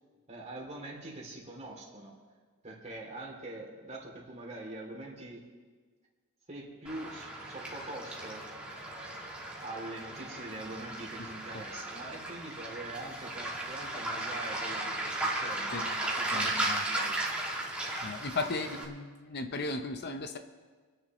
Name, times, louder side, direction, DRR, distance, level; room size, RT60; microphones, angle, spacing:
voice 1, 0.3-2.1 2.6-5.4 6.5-8.4 9.6-17.1, right 2 dB, 30° right, -1 dB, 2.8 m, -44 dB
Waves surf, 6.9-18.9, right 1 dB, 5° right, 2.1 m, -36 dB
voice 2, 16.3-16.9 18.0-20.4, left 3 dB, 50° left, 7 dB, 0.7 m, -36 dB
27.0 x 10.5 x 3.1 m, 1.5 s
head